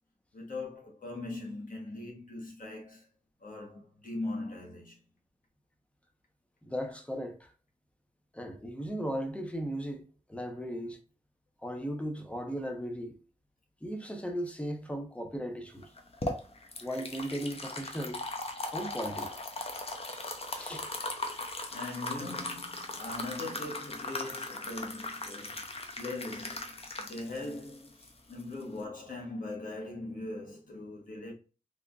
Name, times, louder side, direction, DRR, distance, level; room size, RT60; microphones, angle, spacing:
voice 1, 0.3-3.1 3.4-5.0 20.5-20.7 21.6-31.3, left 2 dB, 75° left, 1.3 m, -41 dB
voice 2, 6.6-7.5 8.3-11.0 11.6-13.2 13.8-15.9 16.8-18.2 18.6-19.3 20.1-20.3 20.6-20.9, equal, 10° left, 0.8 m, -37 dB
sound 1, 15.8-28.8, left 2 dB, 45° left, 0.8 m, -39 dB
3.5 x 3.3 x 2.5 m
wide cardioid pair, 65°, 14 cm